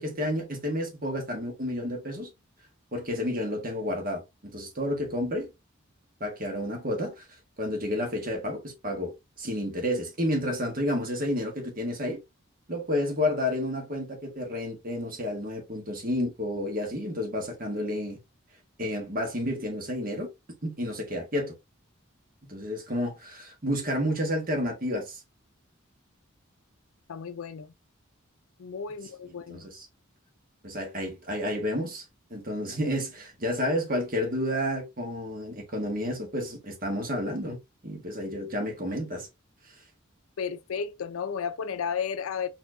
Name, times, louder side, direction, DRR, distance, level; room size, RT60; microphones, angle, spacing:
voice 1, 0.0-2.3 2.9-5.5 6.2-7.2 7.6-9.1 9.4-12.2 12.7-18.2 18.8-20.3 20.6-21.5 22.4-25.2 29.5-29.9 30.6-32.0 32.3-37.6 37.8-39.3, left 1 dB, 40° right, 1.4 m, -30 dB
voice 2, 27.1-27.7 28.6-29.7 40.4-42.5, left 6 dB, 85° left, 0.5 m, -33 dB
4.2 x 2.8 x 2.6 m
head